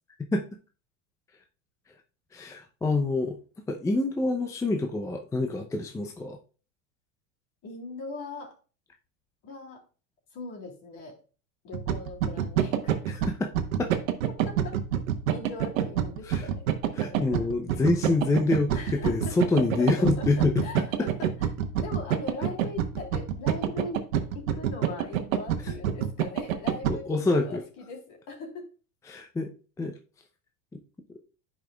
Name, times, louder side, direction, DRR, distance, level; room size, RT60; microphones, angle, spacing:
voice 1, 2.3-3.4 3.7-6.4 13.3-13.5 13.8-13.9 16.2-16.5 16.9-20.6 25.6-25.7 26.9-27.6 29.1-29.5 29.8-29.9, left 3 dB, 10° left, 4 dB, 0.5 m, -26 dB
voice 2, 7.6-8.5 9.4-9.8 10.3-11.2 11.6-13.0 14.4-14.8 15.3-17.4 18.7-21.3 21.8-24.0 24.3-28.7, left 3 dB, 50° left, -1 dB, 3.3 m, -40 dB
sound 1, 11.7-26.9, right 10 dB, 85° right, 1.0 m, -27 dB
10.5 x 5.1 x 2.3 m, 0.37 s
supercardioid pair, 110°, 39 cm